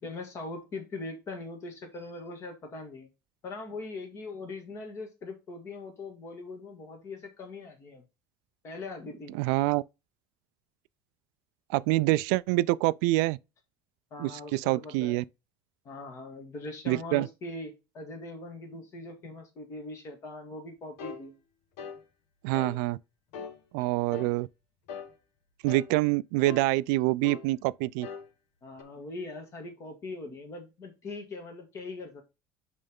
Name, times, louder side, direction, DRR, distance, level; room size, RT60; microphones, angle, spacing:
voice 1, 0.0-3.1 3.4-8.0 8.6-9.4 14.1-15.2 15.8-21.3 28.6-32.2, left 2 dB, 30° left, 1.7 m, -41 dB
voice 2, 9.3-9.8 11.7-13.4 14.2-15.2 16.9-17.3 22.4-23.0 23.7-24.5 25.6-28.1, right 19 dB, 80° right, 0.3 m, -26 dB
sound 1, 21.0-21.2 21.8-22.0 22.5-22.8 23.3-23.6 24.1-24.3 24.9-25.1 25.7-25.9 26.4-26.7 27.2-27.5 28.0-28.3 28.8-28.9, left 6 dB, 70° left, 1.4 m, -40 dB
9.0 x 3.4 x 3.6 m
cardioid pair, 170°, 9 cm